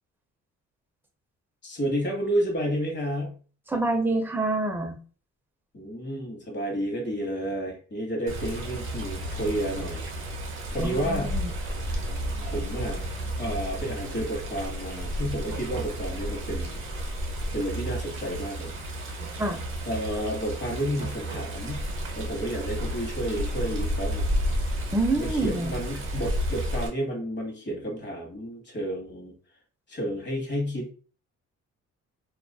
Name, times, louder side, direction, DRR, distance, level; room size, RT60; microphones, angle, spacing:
voice 1, 1.6-3.4 5.7-10.1 10.7-11.3 12.4-13.1 13.4-16.8 17.5-18.7 19.3-19.4 19.9-21.8 22.1-24.4 25.2-29.3 29.9-30.9, equal, 35° left, 2 dB, 1.1 m, -31 dB
voice 2, 3.7-5.0 10.8-11.5 19.4-19.6 24.9-25.7, right 2 dB, 5° right, 5 dB, 0.4 m, -27 dB
Water, 8.3-26.9, equal, 45° right, 0.8 m, -32 dB
2.4 x 2.4 x 2.2 m, 0.39 s
cardioid pair, 90°, 30 cm